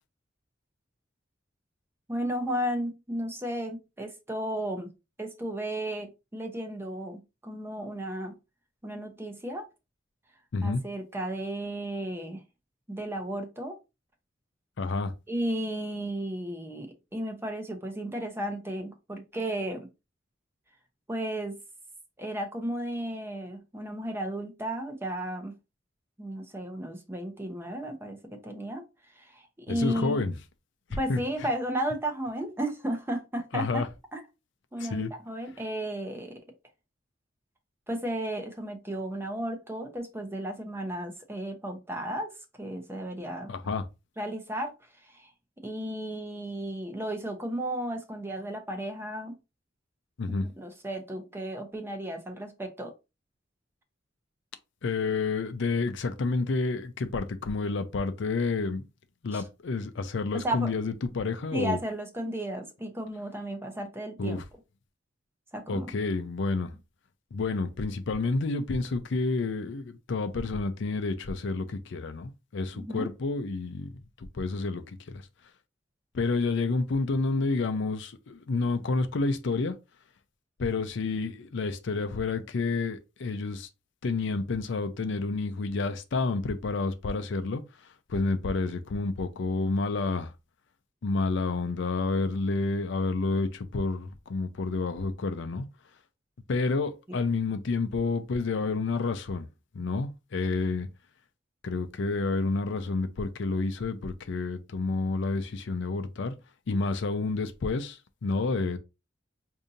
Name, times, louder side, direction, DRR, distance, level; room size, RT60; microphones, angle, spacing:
voice 1, 2.1-4.9 5.2-8.3 8.8-9.6 10.6-12.4 12.9-13.8 15.3-19.9 21.1-21.5 22.2-25.5 26.2-28.8 29.1-30.3 31.0-33.8 34.1-34.2 34.7-36.4 37.9-42.3 42.6-43.5 44.2-44.7 45.0-45.3 45.6-49.4 50.3-52.9 59.3-59.4 60.3-60.7 61.5-64.4 65.5-65.9 72.7-73.1 97.1-97.2, right 1 dB, 15° right, 0.7 m, -34 dB
voice 2, 14.8-15.1 29.7-30.4 31.1-31.2 33.5-33.9 34.8-35.1 43.5-43.8 50.2-50.5 54.8-58.8 59.2-61.8 64.2-64.4 65.7-66.7 67.3-75.2 76.1-79.7 80.6-83.7 84.0-87.6 88.1-90.3 91.0-95.7 96.5-99.5 99.7-100.9 101.6-106.3 106.7-108.8, left 3 dB, 65° left, 0.5 m, -29 dB
5.0 x 2.7 x 2.6 m
head